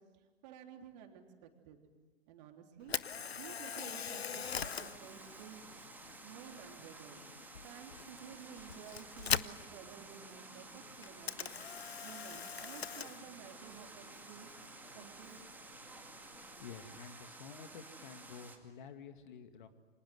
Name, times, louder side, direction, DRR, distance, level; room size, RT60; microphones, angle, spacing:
voice 1, 0.1-1.8 2.3-3.0 3.3-7.2 7.6-11.5 12.0-14.5 14.9-15.6, right 8 dB, 40° right, 4 dB, 3.6 m, -53 dB
Camera, 2.8-16.9, left 7 dB, 75° left, 0.8 m, -43 dB
sound 1, 4.4-18.6, right 3 dB, 5° right, 2.4 m, -53 dB
voice 2, 16.3-19.7, left 6 dB, 50° left, 9 dB, 2.1 m, -51 dB
29.5 x 26.0 x 7.9 m, 1.3 s
figure-of-eight pair, 105°, 31 cm